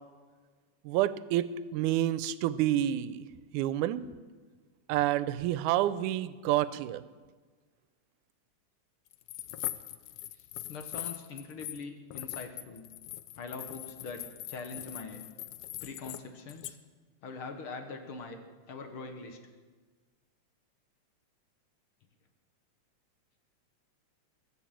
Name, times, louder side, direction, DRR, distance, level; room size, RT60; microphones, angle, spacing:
voice 1, 0.8-3.3 3.5-4.1 4.9-7.0, right 13 dB, 90° right, 15 dB, 2.1 m, -29 dB
sound 1, 9.1-11.8 12.1-16.2 16.5-16.7, left 14 dB, 80° left, 1.5 m, -41 dB
voice 2, 10.3-12.9 13.4-15.2 15.8-16.8 17.2-18.4 18.7-19.4, left 4 dB, 60° left, 6 dB, 1.5 m, -43 dB
21.0 x 7.2 x 7.5 m, 1.4 s
omnidirectional pair, 3.5 m